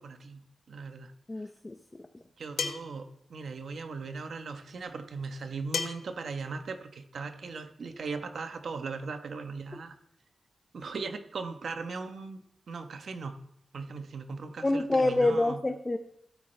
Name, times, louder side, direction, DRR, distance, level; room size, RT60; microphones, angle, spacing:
voice 1, 0.0-1.1 2.4-10.0 10.7-13.4 13.7-15.6, right 4 dB, 55° right, 7 dB, 1.0 m, -39 dB
voice 2, 1.3-1.7 14.6-16.0, left 2 dB, 15° left, 7 dB, 0.5 m, -26 dB
sound 1, 2.6-2.9 5.7-6.1, left 5 dB, 90° left, 1.0 m, -32 dB
16.0 x 8.9 x 3.3 m, 0.74 s
wide cardioid pair, 180°, 0 cm